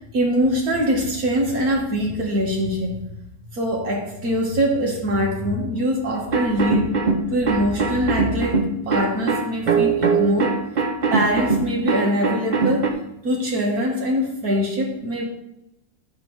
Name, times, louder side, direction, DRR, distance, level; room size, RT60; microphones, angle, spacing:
voice 1, 0.1-2.9 3.5-6.9 7.3-10.6 11.1-12.9 13.2-15.2, equal, 65° right, -1 dB, 2.1 m, -23 dB
sound 1, 6.3-12.9, right 4 dB, 40° right, 0.7 m, -21 dB
9.9 x 4.3 x 6.2 m, 0.84 s
omnidirectional pair, 1.7 m